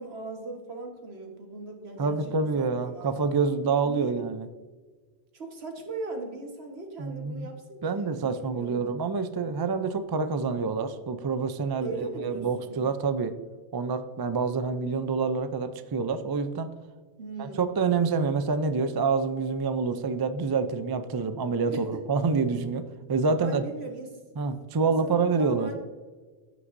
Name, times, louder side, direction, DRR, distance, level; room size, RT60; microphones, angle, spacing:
voice 1, 0.0-3.4 3.9-4.2 5.3-8.8 11.8-12.8 17.2-17.9 21.7-22.0 23.4-24.2 24.8-25.7, right 3 dB, 70° right, 2 dB, 1.7 m, -39 dB
voice 2, 2.0-4.5 7.0-7.5 7.8-13.3 13.7-16.7 17.4-23.6 24.4-25.7, right 4 dB, 40° right, 10 dB, 0.3 m, -27 dB
15.5 x 6.2 x 2.6 m, 1.4 s
omnidirectional pair, 1.1 m